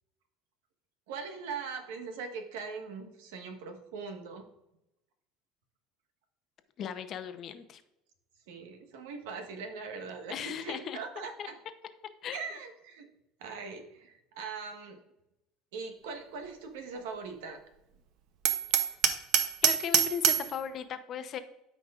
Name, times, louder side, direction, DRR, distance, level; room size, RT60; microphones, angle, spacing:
voice 1, 1.1-4.5 8.5-11.5 12.3-13.1 13.4-15.0 15.7-17.6, right 5 dB, 90° right, 5 dB, 1.3 m, -41 dB
voice 2, 6.8-7.8 10.3-11.0 11.4-11.5 12.2-12.4 19.6-21.4, left 8 dB, 45° left, 9 dB, 0.7 m, -37 dB
Hammer, 18.5-20.5, right 10 dB, 60° right, 0.7 m, -25 dB
12.5 x 5.2 x 2.5 m, 0.87 s
supercardioid pair, 130°, 0 cm